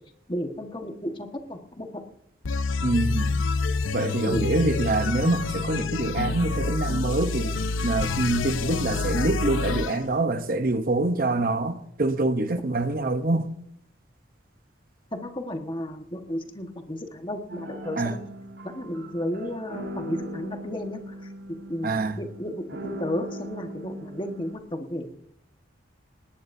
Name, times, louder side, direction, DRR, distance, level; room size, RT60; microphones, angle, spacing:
voice 1, 0.3-2.0 4.2-4.5 15.1-18.2 18.6-21.1 21.7-25.2, left 1 dB, 25° left, 1.4 m, -33 dB
sound 1, 2.4-10.0, left 4 dB, 85° left, 0.7 m, -27 dB
voice 2, 2.8-3.4 3.9-7.6 7.8-13.5 18.0-18.2 21.8-22.2, right 2 dB, 45° right, 0.8 m, -25 dB
sound 2, 17.5-24.6, equal, 60° right, 7.5 m, -39 dB
20.0 x 18.0 x 2.7 m
head